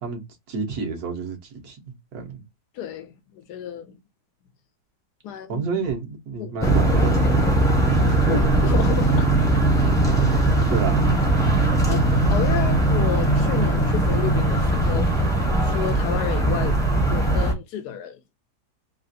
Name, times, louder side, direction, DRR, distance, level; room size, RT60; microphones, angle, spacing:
voice 1, 0.0-2.4 5.5-7.5 8.0-8.4 10.7-11.0, right 5 dB, 70° right, 1.4 m, -29 dB
voice 2, 2.7-4.0 5.2-5.7 6.4-6.7 8.3-9.5 10.3-10.7 11.9-12.0 12.3-15.3 15.6-16.8 17.0-18.2, left 10 dB, 80° left, 1.2 m, -31 dB
sound 1, 6.6-17.5, right 2 dB, 5° left, 0.5 m, -20 dB
3.4 x 2.4 x 2.6 m
omnidirectional pair, 1.7 m